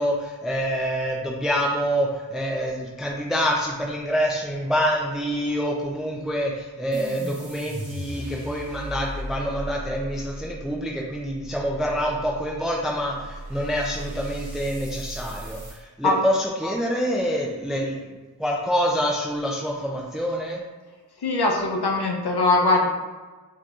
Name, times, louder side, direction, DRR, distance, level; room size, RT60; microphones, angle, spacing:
voice 1, 0.0-18.0 18.4-20.6, equal, ahead, -2 dB, 0.5 m, -26 dB
sound 1, 6.9-15.8, right 1 dB, 50° right, 1.2 m, -37 dB
voice 2, 21.2-22.9, left 2 dB, 80° left, 0 dB, 0.7 m, -21 dB
4.9 x 2.9 x 2.4 m, 1.3 s
wide cardioid pair, 55°, 39 cm